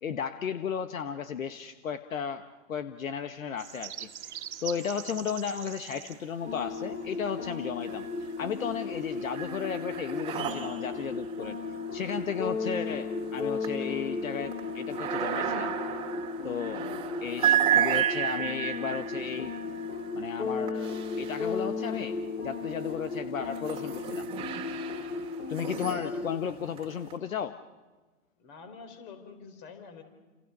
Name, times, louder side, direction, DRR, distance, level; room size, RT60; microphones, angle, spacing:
voice 1, 0.0-2.4 2.7-11.6 11.9-15.7 16.4-16.9 17.2-19.5 20.1-22.2 22.4-24.3 25.5-27.6, left 7 dB, 70° left, 9 dB, 1.3 m, -34 dB
sound 1, 3.6-9.3, right 11 dB, 50° right, 2.0 m, -45 dB
sound 2, 6.4-26.4, left 4 dB, 85° left, 2.9 m, -35 dB
sound 3, 7.8-8.5 8.8-22.0 22.7-27.1, right 10 dB, 15° right, 2.3 m, -33 dB
voice 2, 25.6-26.2 28.4-30.0, left 6 dB, 35° left, 7 dB, 4.9 m, -46 dB
30.0 x 28.5 x 5.5 m, 1.2 s
hypercardioid pair, 140°, 41 cm